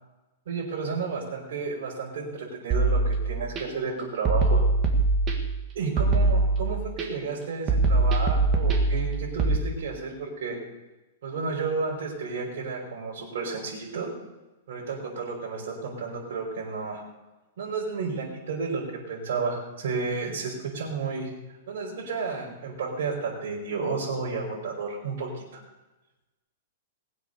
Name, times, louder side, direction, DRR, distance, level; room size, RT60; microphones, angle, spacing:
voice 1, 0.5-4.6 5.7-10.6 11.2-14.1 14.7-17.0 17.6-21.3 21.7-25.6, right 4 dB, 60° right, -4 dB, 5.4 m, -32 dB
sound 1, 2.7-3.6 4.3-5.6 6.0-7.0 7.7-9.6, right 3 dB, 20° right, 1.8 m, -23 dB
19.5 x 8.0 x 6.9 m, 1.1 s
supercardioid pair, 170°, 0 cm